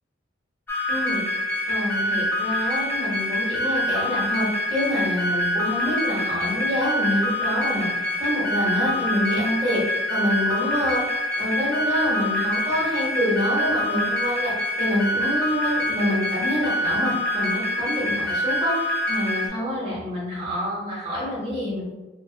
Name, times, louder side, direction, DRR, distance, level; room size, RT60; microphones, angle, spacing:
sound 1, 0.7-19.5, left 1 dB, 10° left, 0.4 m, -25 dB
voice 1, 0.9-1.2 1.7-7.9 8.2-11.0 11.4-14.5 14.8-21.9, left 1 dB, 30° right, -7 dB, 1.1 m, -27 dB
2.5 x 2.4 x 2.4 m, 1.1 s
head